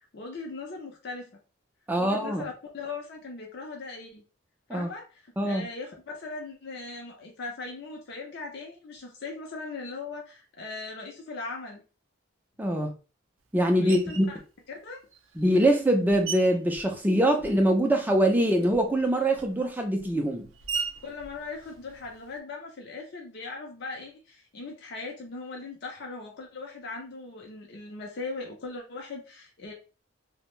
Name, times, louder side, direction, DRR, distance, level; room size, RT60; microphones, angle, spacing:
voice 1, 0.1-1.3 2.0-4.2 4.7-11.8 13.8-14.3 14.8-15.0 21.0-29.7, left 3 dB, 50° left, 0.5 m, -39 dB
voice 2, 1.9-2.4 4.7-4.9 5.4-5.6 12.6-12.9 13.5-14.3 15.4-20.5, right 1 dB, 10° right, 0.4 m, -23 dB
Screech, 13.9-14.4 15.1-17.8 18.1-22.4, right 5 dB, 70° right, 0.5 m, -40 dB
2.5 x 2.0 x 3.0 m
head